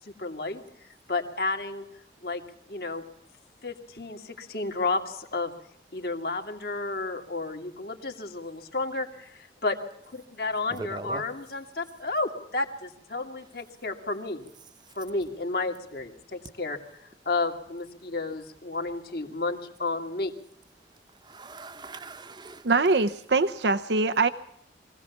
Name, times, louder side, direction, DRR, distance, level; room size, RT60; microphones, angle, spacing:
voice 1, 0.2-0.6 1.1-1.8 2.2-2.4 2.7-3.0 3.6-5.5 5.9-9.8 10.0-14.5 15.0-16.8 17.3-20.3, left 3 dB, 60° left, 4 dB, 2.3 m, -31 dB
voice 2, 10.7-11.3 21.2-22.7, right 2 dB, 25° right, 11 dB, 0.9 m, -40 dB
voice 3, 22.6-24.3, right 3 dB, 80° right, 11 dB, 0.8 m, -23 dB
23.5 x 17.0 x 7.2 m, 0.75 s
head